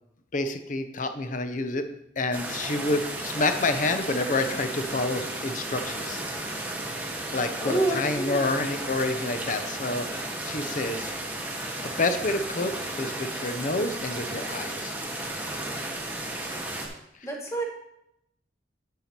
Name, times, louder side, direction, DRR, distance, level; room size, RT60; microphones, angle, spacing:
voice 1, 0.3-1.9 2.2-6.2 7.3-11.1 11.8-14.9, left 2 dB, 50° left, 8 dB, 0.7 m, -28 dB
sound 1, 2.3-16.9, right 1 dB, 10° right, 1.3 m, -34 dB
voice 2, 7.6-8.5 17.2-17.6, right 2 dB, 15° left, 0 dB, 1.6 m, -28 dB
9.0 x 5.6 x 4.4 m, 0.78 s
head